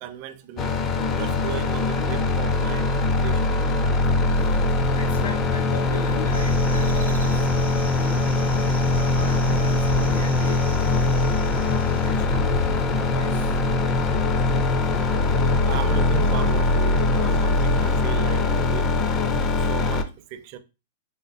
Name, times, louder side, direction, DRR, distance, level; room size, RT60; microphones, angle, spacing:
voice 1, 0.0-0.8 1.1-2.9 3.2-3.4 15.6-18.9 19.6-20.6, right 10 dB, 40° right, 0.4 m, -35 dB
sound 1, 0.6-20.0, left 2 dB, 25° left, 0.4 m, -22 dB
sound 2, 4.2-18.0, left 4 dB, 65° left, 0.9 m, -36 dB
voice 2, 4.9-8.2 8.9-10.7 11.5-13.5, left 3 dB, 85° left, 1.8 m, -38 dB
sound 3, 6.3-12.1, right 7 dB, 75° right, 0.7 m, -41 dB
4.2 x 2.2 x 2.5 m
hypercardioid pair, 145°, 0 cm